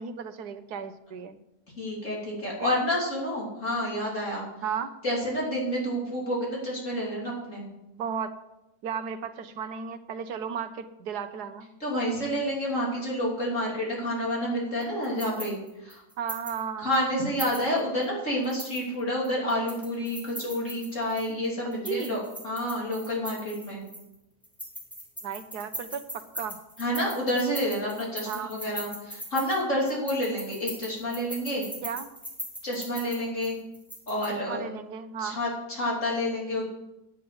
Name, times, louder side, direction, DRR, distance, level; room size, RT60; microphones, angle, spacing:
voice 1, 0.0-1.4 2.6-2.8 4.6-4.9 8.0-8.3 8.8-11.7 16.2-16.9 21.8-22.2 25.2-26.6 28.3-28.5 31.8-32.1 34.3-35.4, right 7 dB, 85° right, 9 dB, 1.5 m, -34 dB
voice 2, 1.8-4.4 5.0-7.7 11.8-15.6 15.8-16.0 16.8-23.8 26.8-31.6 32.6-33.6 34.1-34.6 35.2-36.7, equal, 50° left, -4 dB, 3.5 m, -29 dB
sound 1, 14.8-16.6 16.9-17.0 17.4-18.0 18.4-21.3 21.7-24.1 24.4-34.3, equal, ahead, 2.8 m, -40 dB
9.9 x 8.0 x 7.7 m, 0.91 s
omnidirectional pair, 1.6 m